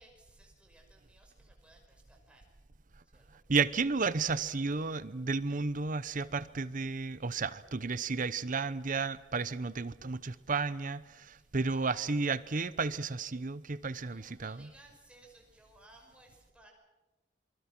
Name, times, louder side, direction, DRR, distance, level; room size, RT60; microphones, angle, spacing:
voice 1, 0.0-2.5 3.1-3.4 11.3-12.2 13.7-16.7, right 1 dB, 5° right, 5.5 m, -60 dB
voice 2, 3.5-14.7, right 4 dB, 45° right, 0.9 m, -32 dB
27.0 x 24.0 x 6.0 m
head